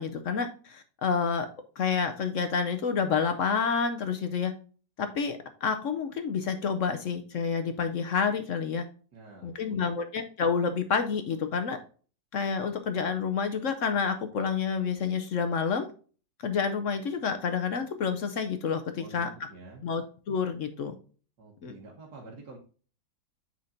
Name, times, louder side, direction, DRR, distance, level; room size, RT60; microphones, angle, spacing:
voice 1, 0.0-1.5 1.8-4.5 5.0-8.8 9.4-11.8 12.3-15.9 16.4-19.3 19.8-20.9 21.6-21.7, left 6 dB, 60° left, 8 dB, 0.8 m, -29 dB
voice 2, 9.1-9.9 19.0-19.9 21.4-22.6, right 3 dB, 70° right, -2 dB, 2.0 m, -48 dB
7.7 x 5.8 x 2.6 m, 0.39 s
omnidirectional pair, 1.9 m